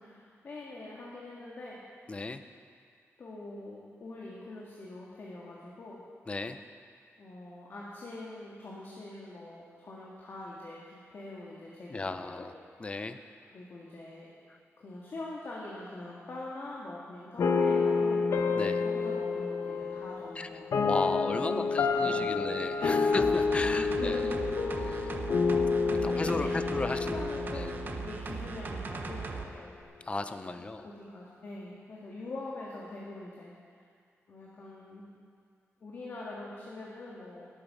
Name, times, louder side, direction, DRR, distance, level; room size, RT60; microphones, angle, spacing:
voice 1, 0.0-1.8 3.2-6.0 7.2-12.5 13.5-14.3 14.8-18.3 18.8-20.7 21.0-23.1 23.6-24.4 25.1-25.3 25.9-29.7 30.6-33.6 34.3-35.1 35.8-37.5, left 2 dB, 50° left, -5 dB, 1.8 m, -43 dB
voice 2, 2.1-2.4 6.3-6.6 11.9-12.5 12.8-13.2 14.5-14.6 18.5-18.8 20.4-20.5 20.8-24.2 24.8-25.1 26.0-27.2 27.5-27.7 30.0-30.9, left 3 dB, 25° left, 9 dB, 0.6 m, -35 dB
sound 1, 17.4-28.5, left 4 dB, 75° left, 0.9 m, -29 dB
sound 2, 23.1-29.5 29.8-29.9, right 4 dB, 45° right, 0.9 m, -39 dB
19.0 x 8.6 x 5.4 m, 2.2 s
wide cardioid pair, 175°, 5 cm